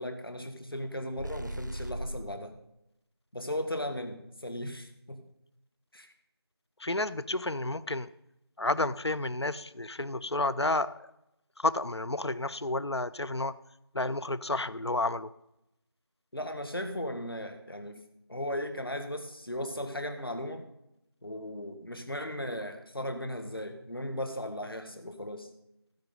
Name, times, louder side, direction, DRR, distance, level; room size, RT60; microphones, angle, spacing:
voice 1, 0.0-2.5 3.3-5.2 5.9-6.1 16.3-18.0 18.3-20.6 21.2-25.5, left 1 dB, 55° left, 5 dB, 1.7 m, -36 dB
sound 1, 1.2-2.4, right 1 dB, 45° right, 0.5 m, -37 dB
voice 2, 6.8-8.1 8.6-11.1 11.6-13.6 13.9-15.3, left 2 dB, 75° left, 15 dB, 0.6 m, -31 dB
15.5 x 5.3 x 5.2 m, 0.84 s
figure-of-eight pair, 180°, 14 cm